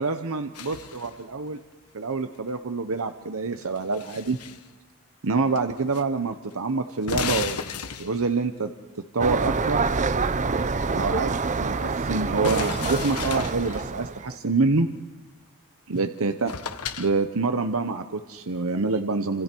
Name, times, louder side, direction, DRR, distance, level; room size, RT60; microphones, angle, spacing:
voice 1, 0.0-1.6 1.9-4.4 5.2-7.6 8.0-8.7 9.1-9.9 10.9-14.9 15.9-16.5 17.0-19.4, right 3 dB, 65° right, 7 dB, 1.0 m, -26 dB
sound 1, 0.5-1.2 3.6-4.6 5.6-6.0 6.3-6.4 7.0-8.4 12.4-13.9 16.0-16.1 16.5-17.1, left 5 dB, 80° left, 1.4 m, -33 dB
sound 2, 9.2-14.4, right 4 dB, 35° right, 0.7 m, -26 dB
29.5 x 26.5 x 4.6 m, 1.2 s
head